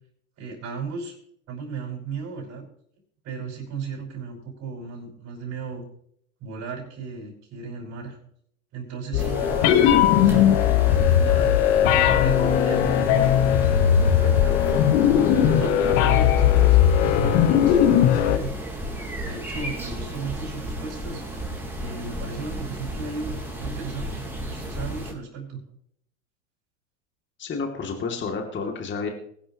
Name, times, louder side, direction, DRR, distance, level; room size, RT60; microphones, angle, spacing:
voice 1, 0.4-1.2 1.5-2.7 3.2-5.8 6.4-8.2 8.7-11.6 12.2-13.4 13.9-14.8 15.4-18.5 18.9-21.2 21.8-25.6, right 5 dB, 40° right, -1 dB, 5.5 m, -35 dB
sound 1, 9.1-18.4, left 10 dB, 60° left, 1.3 m, -18 dB
sound 2, 9.2-25.1, right 1 dB, 5° right, 4.4 m, -33 dB
voice 2, 27.4-29.1, left 4 dB, 30° left, 3 dB, 2.5 m, -30 dB
21.0 x 11.5 x 2.9 m, 0.67 s
hypercardioid pair, 100°, 41 cm